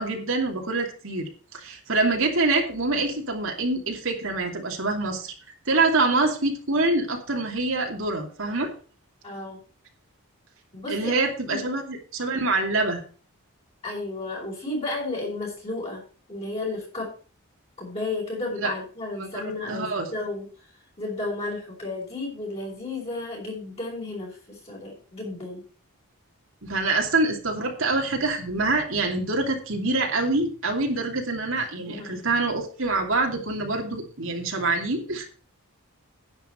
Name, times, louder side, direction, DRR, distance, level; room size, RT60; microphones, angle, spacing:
voice 1, 0.0-5.3 5.7-8.7 10.9-13.0 18.6-18.7 19.2-19.4 19.7-20.1 26.6-35.2, right 3 dB, 60° right, 2 dB, 2.5 m, -25 dB
voice 2, 9.2-9.6 10.7-11.1 11.5-11.7 13.8-16.0 16.3-17.1 17.8-20.5 21.0-25.6 31.6-32.2, left 2 dB, 25° left, -4 dB, 5.2 m, -33 dB
11.0 x 9.0 x 4.4 m, 0.38 s
head